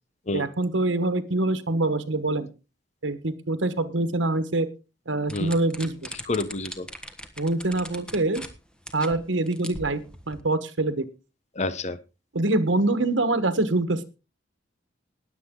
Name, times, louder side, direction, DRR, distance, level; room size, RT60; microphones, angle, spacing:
voice 1, 0.3-2.5 3.0-4.7 5.1-6.1 7.4-8.4 8.9-10.0 10.3-11.0 12.3-14.0, right 2 dB, 85° right, 11 dB, 1.4 m, -25 dB
sound 1, 5.3-8.5 8.9-9.1 9.5-10.4, equal, 5° left, 1.4 m, -40 dB
voice 2, 6.3-6.9 11.6-12.0, left 2 dB, 35° left, 14 dB, 0.9 m, -29 dB
20.0 x 8.1 x 3.8 m, 0.30 s
head